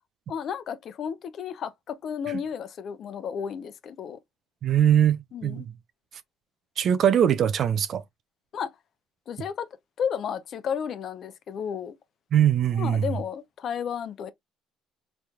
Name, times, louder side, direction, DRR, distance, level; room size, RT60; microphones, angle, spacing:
voice 1, 0.3-4.2 5.3-5.6 8.5-8.7 9.3-9.7 10.0-11.9 12.7-14.3, left 7 dB, 55° left, 0.8 m, -32 dB
voice 2, 4.6-5.2 5.4-5.7 6.8-8.0 12.3-13.0, right 9 dB, 55° right, 0.6 m, -21 dB
4.3 x 3.3 x 2.3 m
cardioid pair, 95°, 0 cm